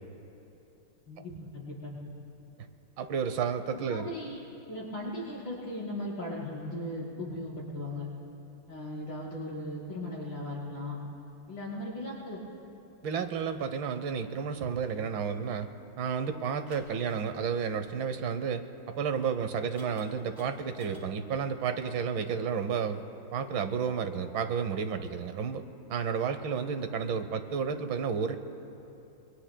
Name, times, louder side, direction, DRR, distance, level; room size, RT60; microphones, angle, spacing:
voice 1, 1.1-2.0 3.7-4.4 4.7-8.1 8.7-11.0 11.5-12.6, left 1 dB, 80° left, -7 dB, 5.3 m, -38 dB
voice 2, 3.0-4.1 13.0-15.7 16.0-23.0 23.3-25.6 25.9-28.4, right 6 dB, 75° right, 9 dB, 1.6 m, -31 dB
sound 1, 16.7-18.5 19.1-19.2 19.8-21.1, equal, 10° right, 2.3 m, -53 dB
26.5 x 24.0 x 2.2 m, 2.9 s
omnidirectional pair, 2.1 m